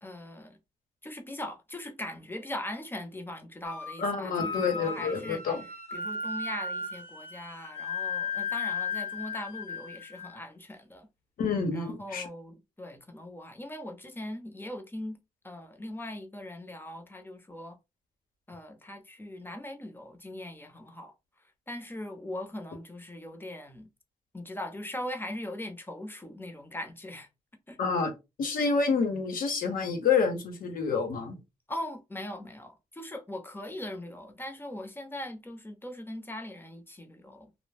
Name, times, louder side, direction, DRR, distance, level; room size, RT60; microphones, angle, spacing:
voice 1, 0.0-0.6 1.0-5.4 5.9-11.1 11.7-15.2 15.4-17.8 18.5-21.1 21.7-23.9 24.3-27.3 27.7-27.8 31.7-37.5, left 1 dB, 15° left, 0.7 m, -40 dB
sound 1, 3.6-4.0 4.3-10.4, left 4 dB, 45° left, 0.8 m, -35 dB
voice 2, 4.0-5.6 11.4-12.3 27.8-28.1 28.4-31.4, left 5 dB, 80° left, 0.8 m, -28 dB
2.2 x 2.1 x 3.3 m
cardioid pair, 65°, 14 cm